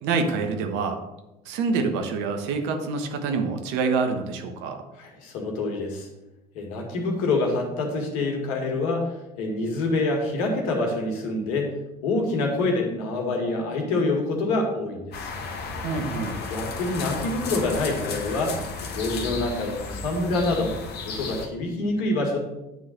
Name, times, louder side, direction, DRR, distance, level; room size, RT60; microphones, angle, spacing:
voice 1, 0.0-1.0 1.4-4.8 15.8-16.4, right 4 dB, 70° right, 5 dB, 1.3 m, -26 dB
voice 2, 5.0-6.1 6.5-11.7 12.0-15.3 16.5-18.6 18.9-20.7 21.0-22.4, left 2 dB, 75° left, 2 dB, 2.0 m, -26 dB
sound 1, 15.1-21.5, left 4 dB, 55° left, 1.4 m, -34 dB
9.2 x 3.9 x 6.5 m, 0.98 s
hypercardioid pair, 65°, 19 cm